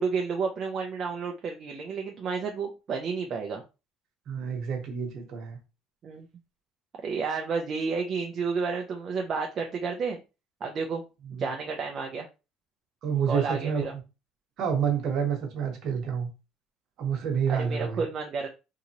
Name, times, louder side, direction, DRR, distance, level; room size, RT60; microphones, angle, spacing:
voice 1, 0.0-3.6 6.0-6.3 7.0-10.2 10.6-11.0 11.3-12.3 13.3-13.9 17.5-18.5, right 5 dB, 35° right, 0.5 m, -31 dB
voice 2, 4.3-5.6 11.3-11.4 13.0-13.9 14.6-16.3 17.0-18.0, right 7 dB, 50° right, 1.2 m, -28 dB
3.8 x 2.7 x 2.9 m
cardioid pair, 165°, 0 cm